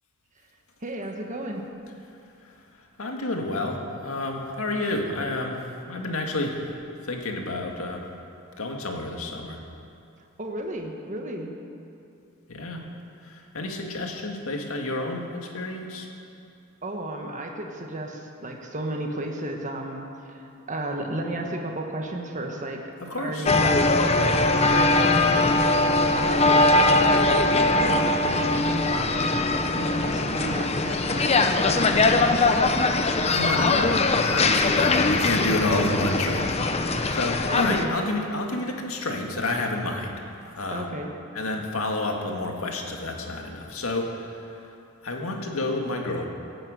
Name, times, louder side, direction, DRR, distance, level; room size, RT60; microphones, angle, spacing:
voice 1, 0.8-1.6 10.4-11.5 16.8-22.8 23.2-23.8 24.2-29.3 29.8-31.7 34.5-34.7 35.4-35.5 36.6-36.8 37.5-38.1 40.7-41.1, right 2 dB, 35° right, 2 dB, 1.5 m, -33 dB
voice 2, 3.0-5.6 5.9-6.8 7.0-8.0 8.6-9.7 12.5-12.8 13.2-16.1 23.0-23.5 33.2-36.4 36.8-40.2 40.4-40.9 41.3-44.7 45.0-46.3, left 2 dB, 90° left, 2 dB, 2.0 m, -29 dB
sound 1, 23.5-37.9, left 2 dB, 30° left, 0.8 m, -21 dB
17.5 x 9.0 x 7.9 m, 2.6 s
head